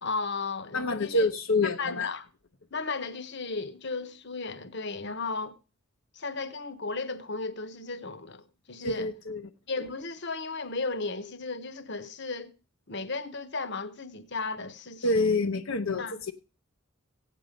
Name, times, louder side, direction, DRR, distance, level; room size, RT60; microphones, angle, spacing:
voice 1, 0.0-1.3 1.8-2.2 2.7-5.5 6.1-9.1 9.7-12.5 12.9-15.3 16.0-16.2, left 3 dB, 55° left, 1.2 m, -35 dB
voice 2, 0.7-2.1 8.8-9.5 15.0-16.3, left 2 dB, 75° left, 0.9 m, -27 dB
16.0 x 9.4 x 5.2 m
head